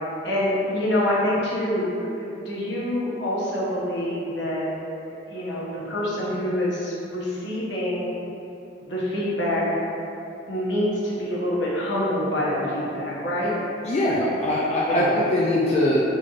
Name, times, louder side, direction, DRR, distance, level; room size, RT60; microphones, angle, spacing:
voice 1, 0.2-4.6 5.0-8.1 8.8-9.6 10.5-13.5 14.9-15.1, left 1 dB, 70° left, -7 dB, 0.9 m, -26 dB
voice 2, 13.8-16.0, left 1 dB, 35° left, -6 dB, 0.3 m, -22 dB
4.0 x 3.2 x 2.4 m, 2.8 s
head